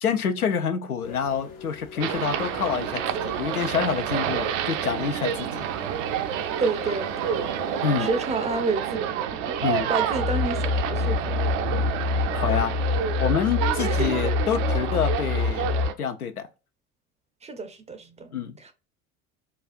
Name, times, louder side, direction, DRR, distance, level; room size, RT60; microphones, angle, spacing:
voice 1, 0.0-5.7 7.8-8.1 9.6-9.9 12.3-12.8 13.2-15.7 16.0-16.5 18.3-18.6, left 7 dB, 90° left, 0.6 m, -27 dB
sound 1, 1.0-8.6, left 6 dB, 70° left, 0.9 m, -45 dB
sound 2, 2.0-15.9, right 9 dB, 60° right, 0.6 m, -29 dB
voice 2, 6.6-7.5 8.0-9.1 9.3-11.4 13.8-14.1 17.4-18.3 18.6-18.7, right 3 dB, 15° right, 0.5 m, -29 dB
sound 3, 10.1-15.9, left 4 dB, 35° left, 0.4 m, -26 dB
4.1 x 2.3 x 2.5 m
figure-of-eight pair, 65°, 43 cm